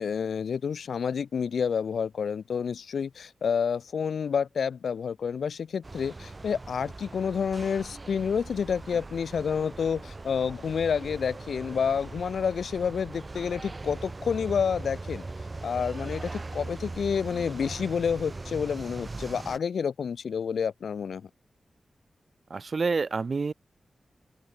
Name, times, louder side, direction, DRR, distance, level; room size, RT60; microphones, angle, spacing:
voice 1, 0.0-15.2 15.6-21.3, left 6 dB, 90° left, 2.8 m, -29 dB
sound 1, 5.8-19.6, right 3 dB, 25° right, 3.2 m, -40 dB
voice 2, 22.5-23.5, right 4 dB, 40° right, 6.0 m, -28 dB
open air
wide cardioid pair, 170°, 0 cm